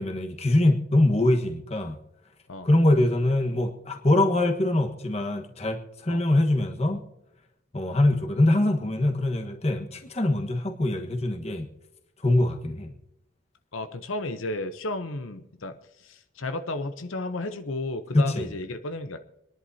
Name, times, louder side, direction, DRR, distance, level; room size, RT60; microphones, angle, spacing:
voice 1, 0.0-2.0 2.6-7.0 7.7-11.6 12.2-12.9 18.1-18.5, left 1 dB, 35° left, 1.3 m, -23 dB
voice 2, 13.7-19.2, left 2 dB, 90° left, 0.8 m, -33 dB
27.0 x 10.5 x 2.8 m
head